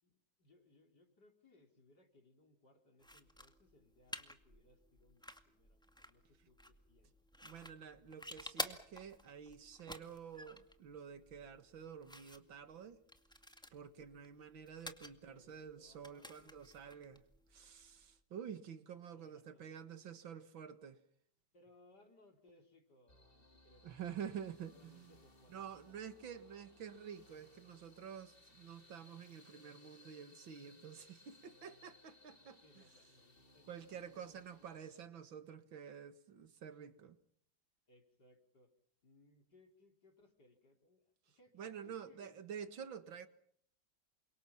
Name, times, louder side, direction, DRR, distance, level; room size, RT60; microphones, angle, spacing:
voice 1, 0.0-7.1 13.8-14.0 15.2-16.5 18.9-19.8 21.5-24.0 24.6-26.9 32.6-33.8 34.1-34.7 37.9-38.7 39.0-42.4, left 2 dB, 55° left, 4.9 m, -68 dB
sound 1, 3.0-18.1, equal, ahead, 1.9 m, -51 dB
voice 2, 7.4-13.0 13.7-17.2 17.5-21.0 23.8-25.1 25.5-32.6 33.7-37.2 41.6-43.3, right 8 dB, 75° right, 2.4 m, -49 dB
sound 2, 23.1-35.1, left 2 dB, 25° left, 2.9 m, -65 dB
29.0 x 26.0 x 6.0 m
omnidirectional pair, 2.1 m